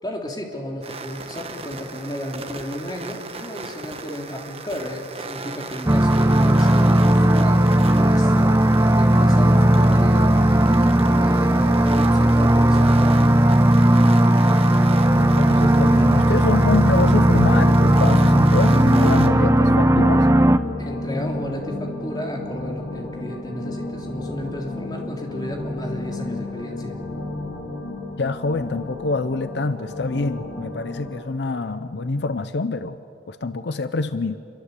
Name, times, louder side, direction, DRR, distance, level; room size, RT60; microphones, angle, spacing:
voice 1, 0.0-13.4 20.8-27.0, equal, 25° left, 1 dB, 3.3 m, -33 dB
sound 1, 0.8-19.3, right 4 dB, 35° right, 1.6 m, -37 dB
sound 2, 5.9-20.6, right 1 dB, 15° right, 0.7 m, -16 dB
voice 2, 15.1-20.3 28.2-33.0 33.3-34.4, left 3 dB, 75° left, 12 dB, 0.7 m, -25 dB
sound 3, 15.7-31.2, left 2 dB, 90° left, 4.0 m, -32 dB
27.5 x 23.0 x 8.3 m, 3.0 s
head